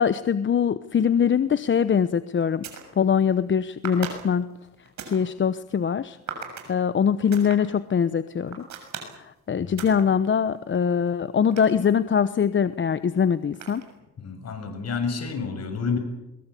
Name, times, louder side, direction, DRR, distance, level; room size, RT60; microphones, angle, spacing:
voice 1, 0.0-2.6 3.0-4.5 5.0-8.7 9.5-13.8, left 7 dB, 40° left, 13 dB, 0.9 m, -23 dB
sound 1, 1.7-1.9 2.4-2.9 3.8-5.2 6.3-6.7 7.3-7.6 8.5-9.2 9.8-10.0 10.5-12.3 13.5-14.0, right 6 dB, 65° right, 7.0 m, -38 dB
voice 2, 14.2-16.0, left 5 dB, 55° left, 6 dB, 7.1 m, -29 dB
23.0 x 21.5 x 8.5 m, 0.93 s
cardioid pair, 90°, 30 cm